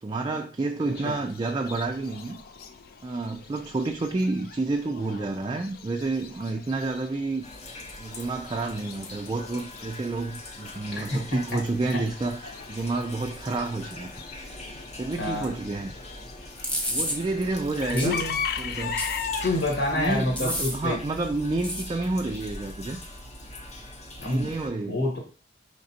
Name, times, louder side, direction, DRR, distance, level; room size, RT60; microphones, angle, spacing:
voice 1, 0.0-2.4 3.0-7.5 7.9-14.6 15.0-15.9 16.9-18.2 18.6-19.0 19.9-23.0 24.2-25.0, right 3 dB, 25° right, 0.3 m, -30 dB
Chicken rooster / Bird, 0.9-20.1, left 7 dB, 55° left, 0.4 m, -40 dB
sound 1, 7.4-24.7, left 1 dB, 40° left, 0.8 m, -42 dB
voice 2, 10.9-11.6 15.2-15.5 17.9-18.4 19.4-21.0 24.2-24.5 24.9-25.2, left 1 dB, 75° left, 1.2 m, -27 dB
sound 2, 16.6-17.2 18.0-18.1 19.0-19.5 20.4-20.8 21.6-21.9, equal, 10° left, 0.7 m, -29 dB
4.9 x 3.2 x 2.7 m
head